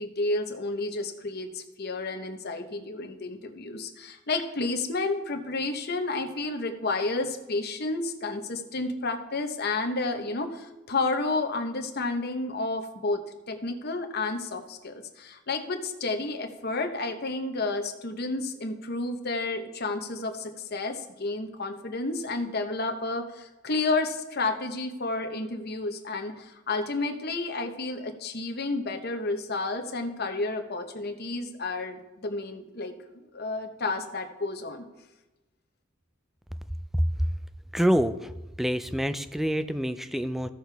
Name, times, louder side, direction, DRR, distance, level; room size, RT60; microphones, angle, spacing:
voice 1, 0.0-13.2 13.5-32.9 33.3-34.8, left 3 dB, 50° left, 6 dB, 0.9 m, -31 dB
voice 2, 37.7-38.3 38.6-40.5, equal, ahead, 11 dB, 0.3 m, -26 dB
14.5 x 6.4 x 3.4 m, 1.1 s
head